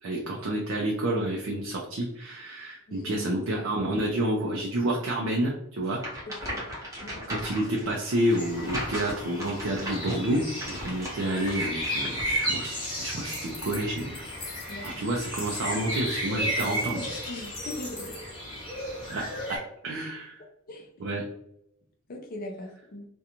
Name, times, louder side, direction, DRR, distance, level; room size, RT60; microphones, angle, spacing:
voice 1, 0.0-6.0 7.3-14.2 14.8-17.1 19.1-19.6 19.8-20.4 21.0-21.2, right 1 dB, 60° right, -1 dB, 0.4 m, -29 dB
voice 2, 2.9-3.3 6.4-6.6 7.0-7.3 14.7-15.0 17.3-18.1 18.5-18.7 20.7-20.9 22.1-23.0, left 1 dB, 40° left, 3 dB, 0.4 m, -40 dB
sound 1, 5.9-12.4, equal, 15° right, 0.7 m, -37 dB
sound 2, 8.4-19.6, equal, 20° left, 0.9 m, -34 dB
sound 3, 13.3-14.9 15.2-15.6 15.8-18.2, left 5 dB, 80° left, 0.6 m, -44 dB
2.5 x 2.2 x 2.8 m, 0.78 s
head